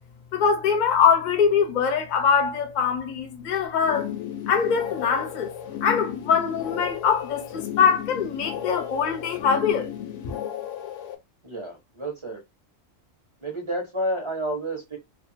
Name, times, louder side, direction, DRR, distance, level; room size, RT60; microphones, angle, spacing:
voice 1, 0.3-4.1 4.5-5.5 5.8-9.9, left 6 dB, 45° left, 0.6 m, -23 dB
sound 1, 3.8-11.2, left 10 dB, 70° left, 0.9 m, -34 dB
voice 2, 11.4-12.4 13.4-15.0, right 1 dB, 30° right, 0.7 m, -30 dB
2.6 x 2.3 x 2.6 m
omnidirectional pair, 1.4 m